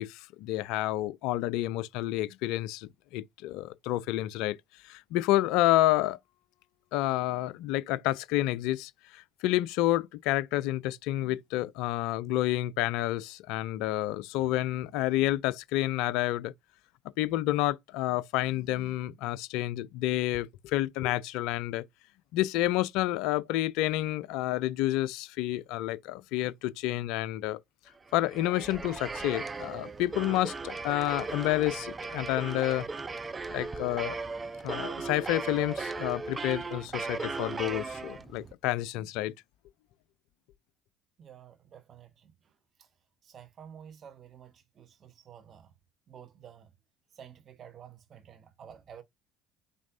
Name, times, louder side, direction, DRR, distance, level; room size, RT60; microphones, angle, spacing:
voice 1, 0.0-4.6 4.8-6.2 6.9-16.5 17.2-21.8 22.3-27.6 28.1-32.9 33.5-34.2 34.6-39.3, left 15 dB, 65° left, 0.3 m, -29 dB
sound 1, 28.1-38.5, right 4 dB, 25° right, 0.5 m, -37 dB
voice 2, 41.2-42.9 43.2-45.7 46.1-46.7 47.1-49.0, right 8 dB, 45° right, 1.0 m, -51 dB
5.1 x 3.9 x 2.6 m
hypercardioid pair, 60°, 0 cm